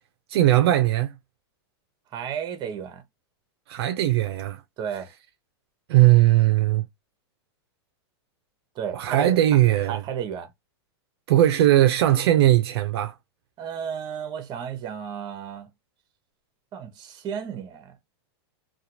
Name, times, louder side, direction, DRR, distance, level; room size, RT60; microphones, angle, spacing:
voice 1, 0.3-1.1 3.7-4.6 5.9-6.9 8.9-10.0 11.3-13.1, right 14 dB, 65° right, 0.4 m, -19 dB
voice 2, 2.1-3.0 4.8-5.1 8.7-9.4 9.9-10.5 13.6-15.7 16.7-17.9, right 8 dB, 30° right, 0.8 m, -33 dB
2.4 x 2.2 x 2.8 m
hypercardioid pair, 130°, 14 cm